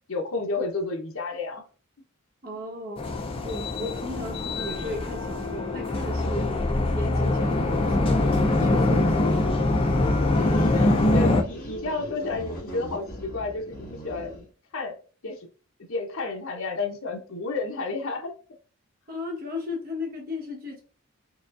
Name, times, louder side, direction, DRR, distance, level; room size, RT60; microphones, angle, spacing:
voice 1, 0.1-1.6 10.7-14.3 14.7-14.9 15.2-15.5 15.9-18.3, left 3 dB, 70° left, 0.9 m, -31 dB
voice 2, 2.4-3.1 3.4-6.5 6.9-9.5 19.1-20.8, left 1 dB, 45° right, 1.2 m, -35 dB
sound 1, 3.0-11.4, left 2 dB, 25° left, 0.5 m, -23 dB
sound 2, 7.3-14.5, equal, 45° left, 1.6 m, -38 dB
4.9 x 2.4 x 2.5 m
head